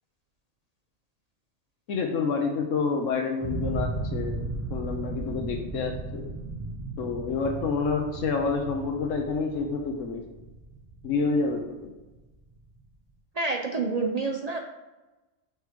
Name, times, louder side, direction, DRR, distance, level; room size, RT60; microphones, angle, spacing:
voice 1, 1.9-4.4 4.7-6.2 7.0-10.3 11.0-11.9, left 4 dB, 85° left, 3 dB, 1.1 m, -28 dB
sound 1, 3.4-12.3, right 2 dB, 5° right, 1.0 m, -35 dB
voice 2, 13.3-14.6, right 3 dB, 50° right, 2 dB, 0.4 m, -28 dB
6.2 x 3.5 x 5.1 m, 1.1 s
omnidirectional pair, 1.3 m